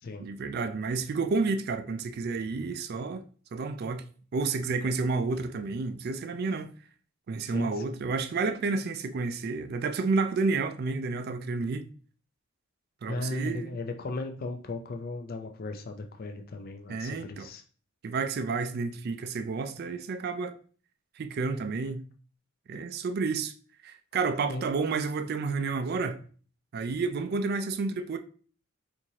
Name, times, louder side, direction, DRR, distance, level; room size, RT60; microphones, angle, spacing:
voice 1, 0.2-3.2 3.5-4.0 4.3-6.7 7.3-11.9 13.0-13.8 16.9-17.5 18.0-20.5 21.2-22.0 22.7-23.5 23.8-26.2 26.7-28.2, right 4 dB, 50° right, 0.3 m, -30 dB
voice 2, 7.4-8.0 13.1-17.6 24.5-24.6, left 2 dB, 45° left, 0.5 m, -36 dB
4.5 x 2.6 x 2.8 m
head